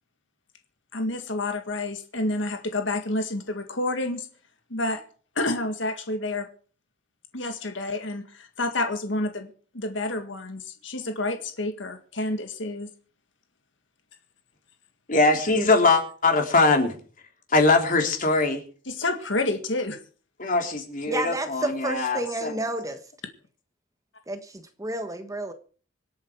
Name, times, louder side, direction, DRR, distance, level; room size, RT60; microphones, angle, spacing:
voice 1, 0.9-4.3 4.7-5.0 5.4-6.5 7.3-12.9 18.9-20.0, left 2 dB, 70° left, 6 dB, 1.8 m, -29 dB
voice 2, 15.1-17.0 17.5-18.6 20.4-22.5, left 3 dB, 45° left, 3 dB, 3.5 m, -21 dB
voice 3, 21.1-23.0 24.3-25.5, right 1 dB, 15° right, 8 dB, 1.3 m, -31 dB
25.5 x 8.6 x 4.7 m, 0.41 s
head